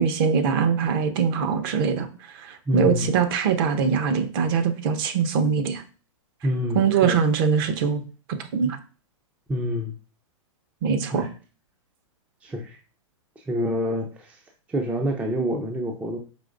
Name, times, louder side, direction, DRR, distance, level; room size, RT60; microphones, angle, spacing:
voice 1, 0.0-2.1 2.4-5.8 6.7-8.0 8.5-8.8 10.8-11.2, right 6 dB, 45° right, 9 dB, 0.7 m, -22 dB
voice 2, 2.7-3.1 6.4-7.2 9.5-9.9 11.1-11.3 12.4-12.8 13.4-14.4 14.7-16.2, left 1 dB, 10° right, 3 dB, 0.4 m, -27 dB
5.0 x 3.0 x 2.5 m, 0.35 s
hypercardioid pair, 135°, 17 cm